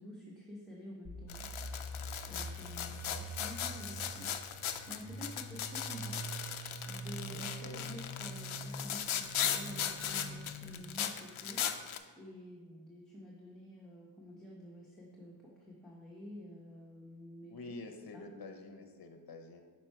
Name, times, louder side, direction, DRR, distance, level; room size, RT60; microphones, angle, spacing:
voice 1, 0.0-1.5 2.3-17.6 18.1-18.3, equal, ahead, -4 dB, 0.9 m, -50 dB
sound 1, 1.0-10.8, right 1 dB, 50° right, 1.3 m, -45 dB
sound 2, 1.3-12.0, left 9 dB, 80° left, 0.5 m, -38 dB
voice 2, 2.8-3.3 7.3-7.9 17.5-19.6, left 3 dB, 50° left, 5 dB, 0.8 m, -48 dB
6.0 x 4.4 x 4.5 m, 1.5 s
wide cardioid pair, 65°, 48 cm